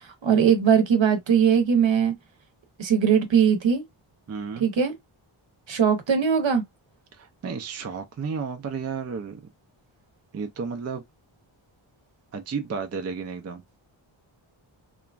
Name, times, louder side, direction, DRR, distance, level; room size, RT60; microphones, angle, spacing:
voice 1, 0.2-2.1 2.8-3.8 4.6-4.9 5.7-6.6, right 7 dB, 65° right, 0.9 m, -20 dB
voice 2, 4.3-4.7 7.1-9.4 10.3-11.0 12.3-13.6, right 5 dB, 35° right, 0.4 m, -32 dB
2.9 x 2.2 x 2.3 m
wide cardioid pair, 130°, 49 cm